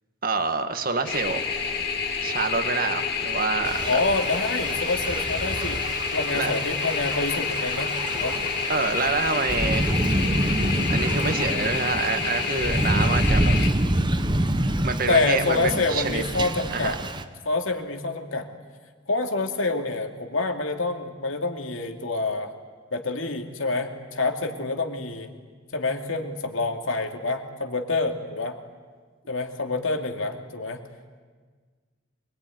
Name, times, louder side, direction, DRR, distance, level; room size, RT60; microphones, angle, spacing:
voice 1, 0.2-1.5 2.2-4.0 6.3-6.5 8.7-9.9 10.9-13.5 14.8-16.2 16.7-17.0, right 4 dB, 45° right, 7 dB, 1.8 m, -27 dB
sound 1, 1.1-13.7, left 5 dB, 55° left, 2.7 m, -29 dB
Thunder / Rain, 3.6-17.2, right 1 dB, 25° right, 1.0 m, -27 dB
voice 2, 3.8-5.8 6.1-8.4 15.1-17.0 17.4-18.5 19.1-22.5 22.9-25.3 25.7-28.6 29.3-30.8, left 3 dB, 80° left, 4 dB, 2.6 m, -27 dB
25.5 x 22.0 x 9.5 m, 1.5 s
head